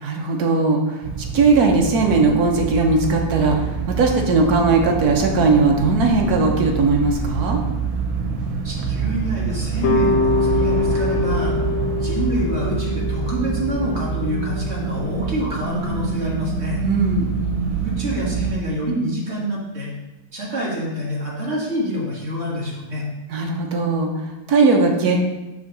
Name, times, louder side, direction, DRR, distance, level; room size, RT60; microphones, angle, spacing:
voice 1, 0.0-1.0 1.3-7.6 16.8-17.4 23.3-25.2, right 3 dB, 60° right, 1 dB, 1.2 m, -18 dB
sound 1, 1.0-18.5, right 6 dB, 90° right, 1.7 m, -26 dB
voice 2, 8.6-11.5 12.0-16.8 17.8-19.9 20.3-23.0, equal, 35° right, -5 dB, 1.6 m, -26 dB
sound 2, 9.8-14.9, left 3 dB, 60° left, 0.6 m, -24 dB
6.4 x 3.1 x 5.9 m, 1.0 s
omnidirectional pair, 2.2 m